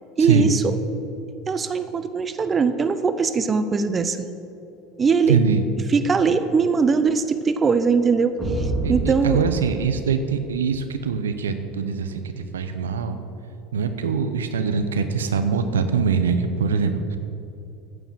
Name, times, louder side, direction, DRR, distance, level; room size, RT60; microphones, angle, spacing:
voice 1, 0.2-0.8 1.5-4.3 5.0-5.4 5.9-9.4, right 5 dB, 30° right, 11 dB, 0.7 m, -21 dB
voice 2, 5.3-5.6 8.8-13.2 13.7-17.2, right 6 dB, 90° right, 8 dB, 0.7 m, -23 dB
sound 1, 8.4-11.0, right 2 dB, 5° left, 2.0 m, -29 dB
9.4 x 7.0 x 7.6 m, 2.7 s
hypercardioid pair, 85°, 0 cm